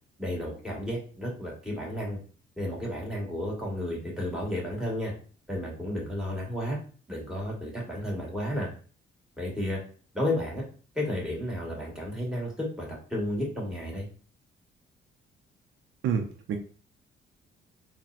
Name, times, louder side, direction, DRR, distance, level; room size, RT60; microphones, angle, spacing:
voice 1, 0.2-2.2 2.6-5.1 5.5-6.8 7.1-8.7 9.4-9.8 10.1-10.6 10.9-14.1, left 1 dB, 5° right, -3 dB, 1.4 m, -32 dB
voice 2, 16.0-16.6, right 7 dB, 70° right, 4 dB, 0.5 m, -28 dB
4.0 x 2.1 x 2.4 m, 0.40 s
cardioid pair, 90°, 20 cm